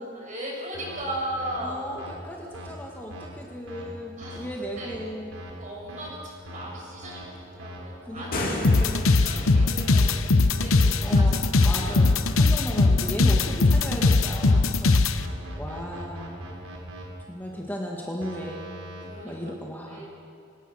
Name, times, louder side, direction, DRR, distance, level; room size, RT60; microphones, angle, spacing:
voice 1, 0.1-1.9 4.2-5.0 5.5-11.4 11.6-12.1 12.4-12.6 14.3-14.8 19.0-19.5 19.9-20.1, right 1 dB, 40° right, -2 dB, 6.9 m, -38 dB
sound 1, 0.7-1.0 1.4-1.6 2.0-2.1 2.5-2.7 3.1-3.3 3.7-3.8 4.2-4.4 4.8-5.0 5.3-5.5 5.9-6.1 6.5-6.6 7.0-7.2 7.6-7.8 8.2-8.4 8.7-8.9 9.3-10.1 10.5-12.3 12.7-14.6 15.2-17.0 18.2-19.0, equal, 80° right, 4.7 m, -41 dB
voice 2, 1.6-5.3 8.0-9.0 11.0-14.9 15.6-16.4 17.3-18.6 19.2-20.0, equal, 10° left, -1 dB, 1.7 m, -36 dB
sound 2, 8.2-9.5, left 2 dB, 45° left, 2.6 m, -32 dB
sound 3, 8.6-15.2, left 3 dB, 75° left, 0.9 m, -20 dB
25.5 x 17.5 x 6.3 m, 2.5 s
head